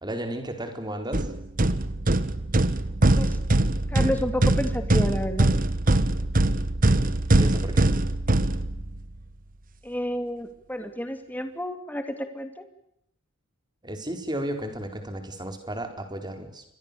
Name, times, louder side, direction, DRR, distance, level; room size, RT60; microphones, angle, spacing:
voice 1, 0.0-1.3 7.3-7.9 13.8-16.6, right 1 dB, 20° right, 6 dB, 4.4 m, -33 dB
sound 1, 1.1-9.1, right 1 dB, 40° right, 1.4 m, -22 dB
voice 2, 3.9-5.5 9.8-12.6, equal, 10° left, 7 dB, 2.7 m, -30 dB
29.5 x 23.5 x 6.9 m, 0.76 s
head